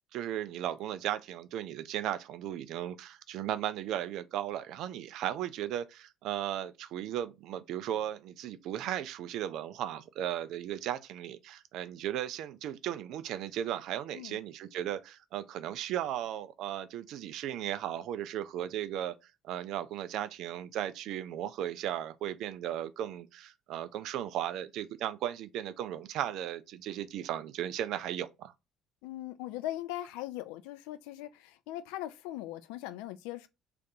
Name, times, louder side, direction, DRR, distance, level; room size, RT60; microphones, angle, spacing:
voice 1, 0.1-19.2 19.4-28.5, right 11 dB, 55° right, 0.3 m, -36 dB
voice 2, 29.0-33.5, left 14 dB, 65° left, 0.3 m, -40 dB
2.6 x 2.5 x 3.8 m
figure-of-eight pair, 55°, 0 cm